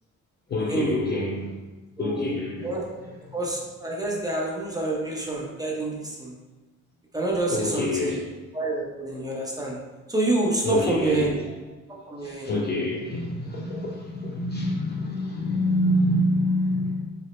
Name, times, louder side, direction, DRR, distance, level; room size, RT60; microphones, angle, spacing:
voice 1, 0.5-1.5 2.0-2.8 7.5-8.4 10.6-11.5 12.2-17.1, left 1 dB, 35° left, -1 dB, 0.5 m, -26 dB
voice 2, 2.0-2.3 2.6-2.8 3.3-6.3 7.1-8.2 8.5-9.8 10.1-11.3 11.9-12.5, right 2 dB, 10° right, -3 dB, 0.7 m, -27 dB
3.8 x 2.1 x 3.1 m, 1.2 s
cardioid pair, 90°, 30 cm